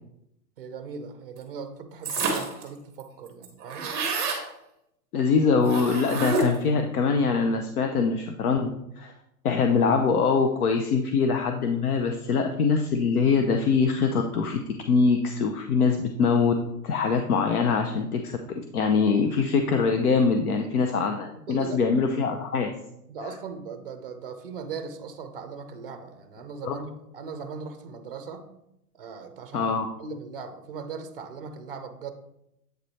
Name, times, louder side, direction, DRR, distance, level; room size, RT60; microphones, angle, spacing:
voice 1, 0.6-4.0 20.4-20.9 21.5-21.8 23.1-28.5 28.9-29.7 30.0-32.1, right 5 dB, 40° right, 9 dB, 0.5 m, -39 dB
sound 1, 2.0-2.6 3.0-3.1 3.3-4.4 5.6-6.7, right 3 dB, 20° right, 0.9 m, -28 dB
voice 2, 5.1-8.7 9.0-9.1 9.4-14.6 14.9-16.5 16.8-22.7 26.6-26.7 29.5-29.9, left 5 dB, 70° left, 5 dB, 0.7 m, -23 dB
8.0 x 3.2 x 4.1 m, 0.82 s
hypercardioid pair, 175°, 47 cm